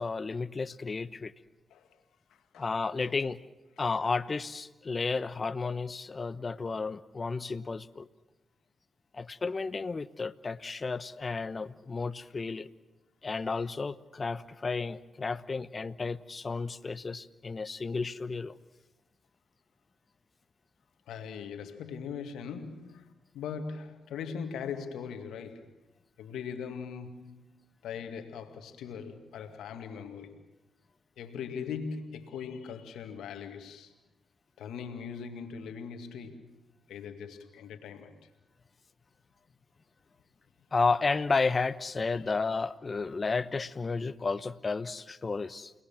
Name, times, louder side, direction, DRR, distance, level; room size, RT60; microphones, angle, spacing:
voice 1, 0.0-1.3 2.6-3.4 3.8-8.1 9.1-12.7 13.2-18.5 40.7-45.7, left 4 dB, 45° left, 1.0 m, -32 dB
voice 2, 2.3-2.7 3.0-3.2 21.1-25.8 26.2-27.5 27.8-30.4 31.2-33.9 34.6-36.6 36.9-38.2 42.1-42.2, left 6 dB, 85° left, 2.1 m, -40 dB
29.5 x 19.5 x 7.4 m
supercardioid pair, 45°, 0 cm